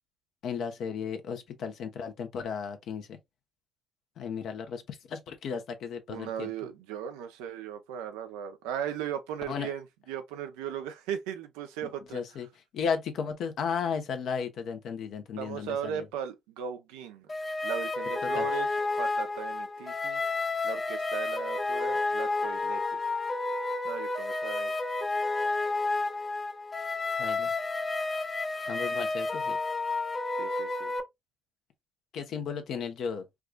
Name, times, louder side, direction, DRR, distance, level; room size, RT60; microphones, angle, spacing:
voice 1, 0.4-3.2 4.2-6.5 9.5-9.7 12.1-12.5 12.7-16.0 18.3-18.5 27.2-27.5 28.7-29.6 32.1-33.2, left 6 dB, 70° left, 0.8 m, -34 dB
voice 2, 6.1-12.2 15.4-17.3 17.6-18.7 19.0-20.2 20.6-23.0 23.8-24.8 30.4-30.9, right 9 dB, 85° right, 0.6 m, -37 dB
sound 1, 17.3-31.0, left 3 dB, 30° left, 0.7 m, -31 dB
4.7 x 2.4 x 2.3 m
hypercardioid pair, 55°, 0 cm